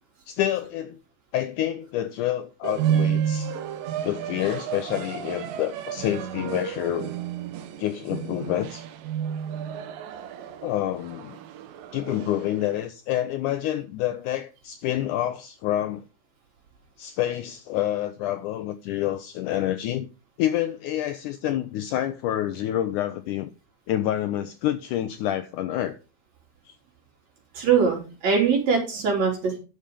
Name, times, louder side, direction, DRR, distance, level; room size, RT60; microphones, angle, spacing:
voice 1, 0.3-1.0 1.3-3.5 4.0-7.1 7.8-8.9 10.6-11.4 11.9-16.0 17.0-20.1 20.4-23.5 23.9-26.0, left 12 dB, 90° left, 1.8 m, -28 dB
sound 1, 2.6-12.8, right 9 dB, 75° right, 2.6 m, -31 dB
voice 2, 27.5-29.6, right 6 dB, 50° right, 4.7 m, -22 dB
11.0 x 6.5 x 5.1 m
omnidirectional pair, 4.3 m